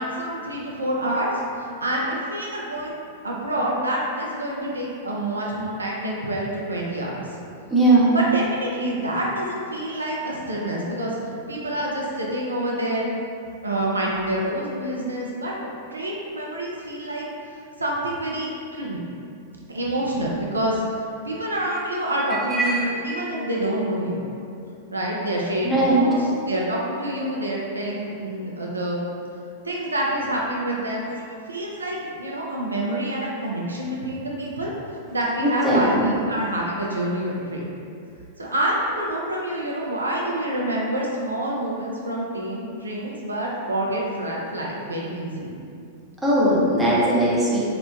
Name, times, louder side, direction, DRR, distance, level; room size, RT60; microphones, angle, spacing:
voice 1, 0.0-3.0 3.2-7.3 8.1-11.2 11.5-13.1 13.6-17.3 17.8-19.0 19.7-21.0 21.2-24.2 24.9-29.1 29.6-31.2 31.5-34.7 35.1-37.7 38.4-45.5, right 1 dB, 80° right, -3 dB, 0.3 m, -27 dB
voice 2, 7.7-8.1 22.5-22.8 23.1-23.2 25.6-26.0 35.4-36.1 46.2-47.6, right 1 dB, 10° right, -9 dB, 0.6 m, -19 dB
2.9 x 2.0 x 2.4 m, 2.5 s
figure-of-eight pair, 95°, 0 cm